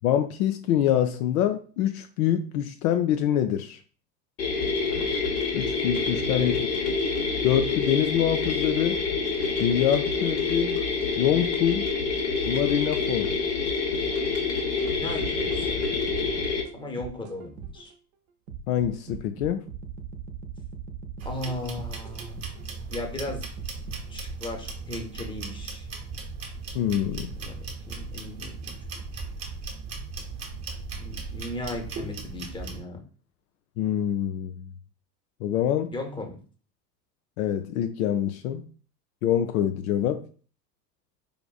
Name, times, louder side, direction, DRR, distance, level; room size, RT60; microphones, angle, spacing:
voice 1, 0.0-3.8 5.5-6.5 7.4-9.0 9.6-10.8 11.2-11.8 12.5-13.3 18.7-19.6 26.7-27.3 33.8-34.7 35.4-35.9 37.4-38.6 39.2-40.2, left 10 dB, 60° left, 7 dB, 0.5 m, -25 dB
sound 1, 4.4-16.6, left 4 dB, 80° left, 1.3 m, -27 dB
voice 2, 14.9-15.9 16.7-17.9 21.2-22.4 22.9-23.5 24.1-25.9 27.4-28.5 31.0-33.0 35.9-36.4, left 2 dB, 10° left, 3 dB, 0.8 m, -36 dB
sound 2, 14.9-17.9 18.5-22.7 23.3-24.0, right 7 dB, 65° right, 0.8 m, -40 dB
sound 3, 21.2-32.8, right 4 dB, 30° right, 0.9 m, -37 dB
4.9 x 2.5 x 2.3 m, 0.41 s
figure-of-eight pair, 75°, 48 cm